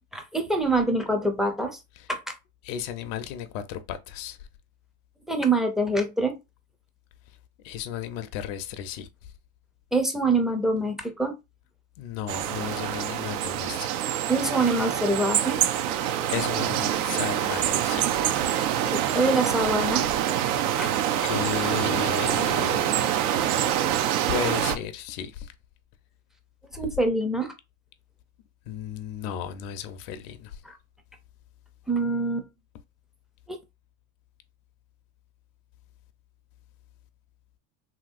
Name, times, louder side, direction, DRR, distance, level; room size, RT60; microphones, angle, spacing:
voice 1, 0.1-1.8 2.1-2.2 5.3-6.4 9.9-11.4 14.3-15.6 18.9-20.1 20.7-20.9 26.7-27.5 30.6-30.7 31.9-32.5 33.5-33.6, right 2 dB, ahead, 0.4 m, -25 dB
voice 2, 2.6-4.4 7.6-9.1 12.0-13.9 16.3-18.1 21.1-22.8 24.3-25.5 28.7-30.6, left 9 dB, 60° left, 0.6 m, -34 dB
sound 1, 12.3-24.8, right 10 dB, 75° right, 0.6 m, -26 dB
3.0 x 2.8 x 2.4 m
supercardioid pair, 110°, 44 cm